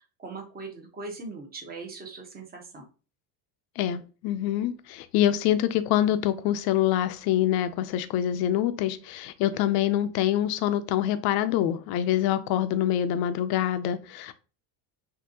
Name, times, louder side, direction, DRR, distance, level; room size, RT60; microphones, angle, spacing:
voice 1, 0.0-2.8, right 3 dB, 20° right, 1.2 m, -40 dB
voice 2, 3.8-14.3, left 11 dB, 55° left, 0.6 m, -25 dB
6.0 x 2.7 x 2.8 m
cardioid pair, 145°, 44 cm